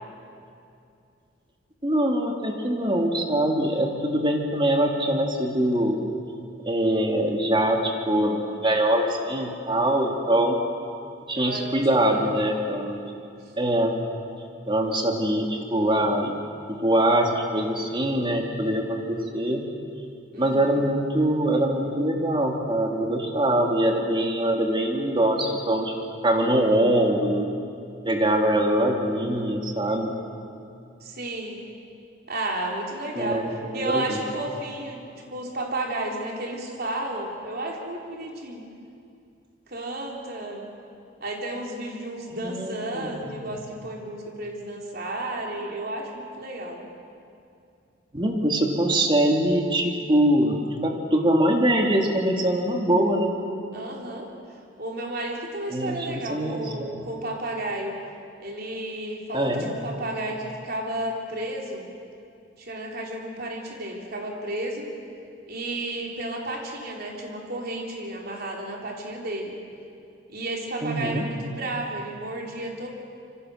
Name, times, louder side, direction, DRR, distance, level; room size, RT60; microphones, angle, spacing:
voice 1, 1.8-6.0 6.6-10.6 11.3-13.0 13.6-14.0 14.7-16.4 16.7-19.7 20.4-25.9 26.2-27.4 28.0-30.2 33.2-34.2 42.4-43.3 48.1-53.3 55.7-57.1 59.3-59.7 70.8-71.2, right 1 dB, 25° right, 2 dB, 2.5 m, -23 dB
voice 2, 11.4-12.3 20.3-20.8 31.0-31.6 32.3-33.4 33.7-35.0 35.3-38.6 39.7-40.7 41.2-46.9 53.7-54.3 54.8-57.9 58.4-61.9 62.6-64.9 65.5-69.5 70.3-72.9, right 1 dB, 55° right, 0 dB, 3.8 m, -32 dB
26.0 x 24.5 x 6.5 m, 2.5 s
head